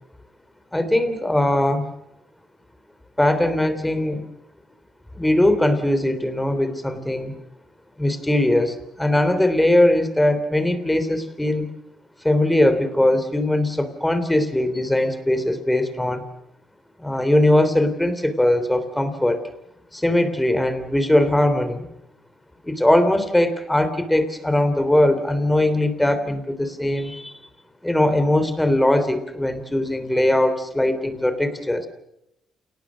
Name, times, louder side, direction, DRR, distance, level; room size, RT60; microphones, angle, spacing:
voice 1, 0.7-1.9 3.2-4.2 5.2-7.3 8.0-11.7 12.2-16.2 17.0-19.4 19.9-21.8 22.6-27.3 27.8-31.9, left 1 dB, 10° left, 10 dB, 3.3 m, -20 dB
29.0 x 18.5 x 6.3 m, 0.82 s
cardioid pair, 90°, 0 cm